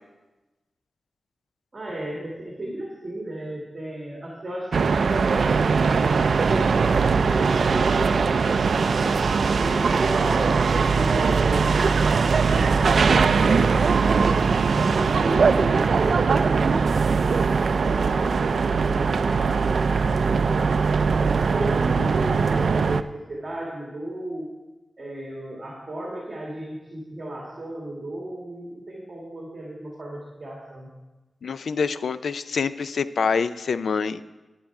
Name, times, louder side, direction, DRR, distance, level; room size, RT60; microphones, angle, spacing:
voice 1, 1.7-9.2 9.6-14.4 14.8-17.4 17.8-24.5 25.0-30.9, right 1 dB, 30° right, -3 dB, 1.8 m, -34 dB
sound 1, 4.7-23.0, right 5 dB, 65° right, 0.3 m, -21 dB
voice 2, 31.4-34.2, left 5 dB, 75° left, 14 dB, 0.3 m, -26 dB
10.5 x 8.5 x 4.7 m, 1.1 s
wide cardioid pair, 165°, 0 cm